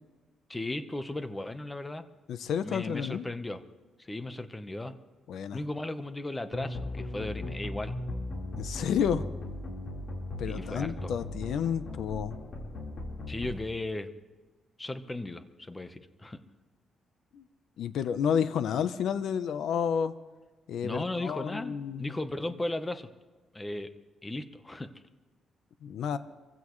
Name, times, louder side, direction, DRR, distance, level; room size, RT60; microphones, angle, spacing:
voice 1, 0.5-2.1 2.6-3.6 4.0-4.9 5.5-7.9 10.4-11.1 13.3-14.1 14.8-16.4 20.8-23.1 23.5-23.9 24.2-24.9, left 2 dB, 15° left, 9 dB, 1.0 m, -36 dB
voice 2, 2.3-3.2 5.3-5.6 8.6-9.3 10.4-12.4 17.3-17.4 17.8-20.1 20.7-22.1 25.8-26.2, left 8 dB, 75° left, 12 dB, 0.8 m, -30 dB
sound 1, 6.5-13.5, left 1 dB, 50° left, 4.1 m, -38 dB
25.0 x 15.5 x 3.2 m, 1.3 s
cardioid pair, 135°, 0 cm